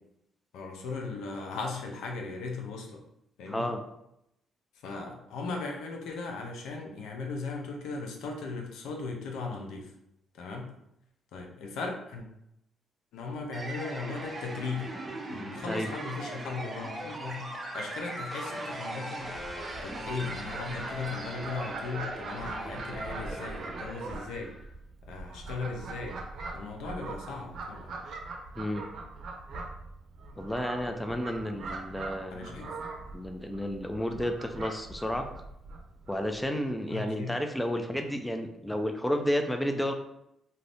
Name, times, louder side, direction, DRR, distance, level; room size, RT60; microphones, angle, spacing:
voice 1, 0.5-3.0 3.4-3.7 4.8-9.9 10.3-10.7 11.3-12.3 13.1-14.9 15.3-19.3 19.8-24.5 25.1-26.2 26.5-27.9 32.3-32.7 36.9-37.3, left 4 dB, 85° left, 2 dB, 0.6 m, -37 dB
voice 2, 3.5-3.8 15.7-15.9 28.6-28.8 30.4-32.7 33.1-35.3 36.1-39.9, equal, 5° left, 5 dB, 0.4 m, -31 dB
sound 1, 13.5-24.7, right 1 dB, 30° right, 0.7 m, -39 dB
Fowl, 19.2-36.5, right 3 dB, 65° right, 0.6 m, -42 dB
2.6 x 2.5 x 3.3 m, 0.80 s
cardioid pair, 90°, 0 cm